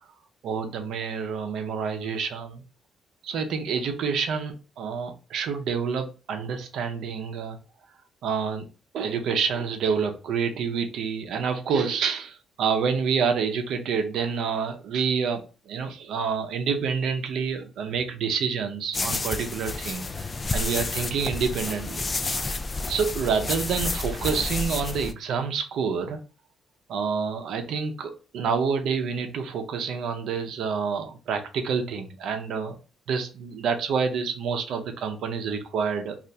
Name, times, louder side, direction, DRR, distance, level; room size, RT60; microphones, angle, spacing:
voice 1, 0.4-2.6 3.2-7.6 8.2-8.7 8.9-20.1 20.5-22.5 22.9-26.2 26.9-32.8 33.1-36.3, right 6 dB, 75° right, 5 dB, 0.6 m, -28 dB
sound 1, 18.9-25.1, left 3 dB, 30° left, 0.3 m, -30 dB
2.7 x 2.4 x 3.3 m, 0.34 s
cardioid pair, 90°, 0 cm